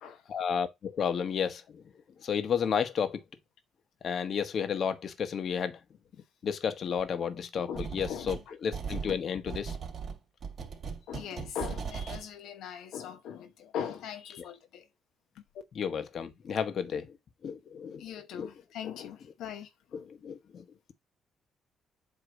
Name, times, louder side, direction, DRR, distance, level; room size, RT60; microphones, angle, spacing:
voice 1, 0.3-1.6 2.2-3.2 4.0-5.8 6.4-9.7 15.7-17.1 17.4-18.0 18.3-18.5 19.9-20.6, left 7 dB, 55° left, 1.2 m, -32 dB
voice 2, 7.7-8.5 9.1-9.2 11.1-14.9 18.0-20.1, left 8 dB, 85° left, 1.0 m, -40 dB
sound 1, 7.7-8.4 8.7-12.2, right 6 dB, 50° right, 2.5 m, -38 dB
8.2 x 3.1 x 5.1 m
cardioid pair, 90°, 0 cm